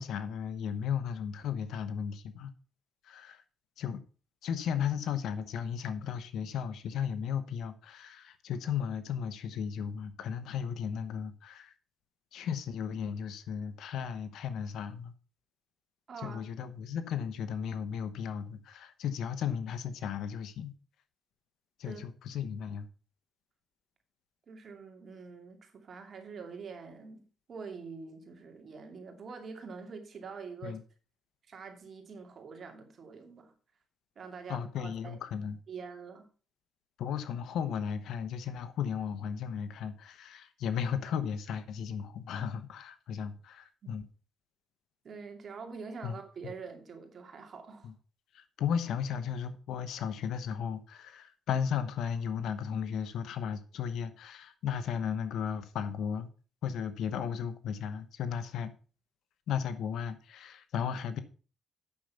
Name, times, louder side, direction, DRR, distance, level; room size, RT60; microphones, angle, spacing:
voice 1, 0.0-2.5 3.0-3.4 3.8-4.0 4.4-11.7 12.3-15.1 16.2-20.7 21.8-22.9 30.6-30.8 34.5-35.6 37.0-44.0 46.0-46.2 47.8-47.9 48.3-56.3 56.6-58.7 59.5-61.2, left 7 dB, 75° left, 1.0 m, -35 dB
voice 2, 16.1-16.4 21.8-22.0 24.5-30.8 31.5-33.5 34.2-35.2 35.7-36.3 43.8-43.9 45.0-47.9, right 5 dB, 50° right, 2.5 m, -45 dB
8.5 x 6.5 x 5.7 m
cardioid pair, 90°, 0 cm